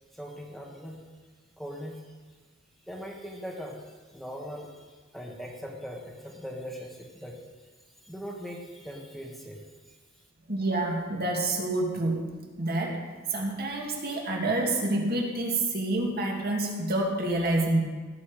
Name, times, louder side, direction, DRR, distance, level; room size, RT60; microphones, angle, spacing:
voice 1, 0.1-1.0 1.6-2.1 2.9-7.4 8.0-9.7, equal, ahead, -1 dB, 1.5 m, -40 dB
voice 2, 10.5-13.0 13.3-17.8, right 2 dB, 50° right, 0 dB, 2.3 m, -28 dB
17.5 x 8.3 x 5.1 m, 1.4 s
head